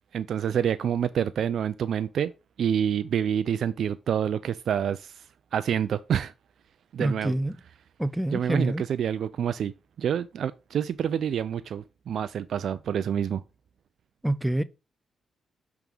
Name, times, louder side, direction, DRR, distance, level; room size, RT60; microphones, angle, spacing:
voice 1, 0.1-2.3 2.6-5.1 5.5-6.3 6.9-7.3 8.3-9.7 10.0-13.4, right 8 dB, 70° right, 0.3 m, -27 dB
voice 2, 7.0-7.6 8.0-8.8 14.2-14.6, right 1 dB, 5° right, 0.4 m, -26 dB
5.9 x 3.5 x 5.4 m
cardioid pair, 65°, 0 cm